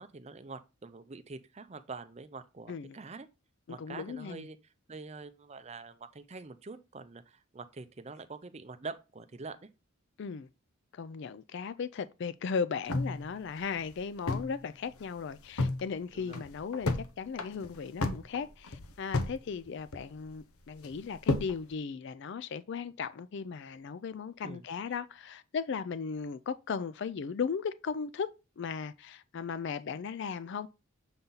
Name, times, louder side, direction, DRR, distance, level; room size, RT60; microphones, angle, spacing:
voice 1, 0.0-3.3 3.7-4.6 4.9-9.7 16.1-16.4 24.4-24.6, right 4 dB, 30° right, 0.5 m, -45 dB
voice 2, 2.7-3.0 3.7-4.5 10.2-10.5 10.9-28.3 28.6-30.7, left 6 dB, 55° left, 0.3 m, -37 dB
sound 1, 12.9-14.6 14.9-15.0 15.3-15.8 16.2-17.1 17.4-19.4 19.7-20.3 20.8-21.6, left 2 dB, 85° left, 0.8 m, -32 dB
6.9 x 4.0 x 3.9 m
head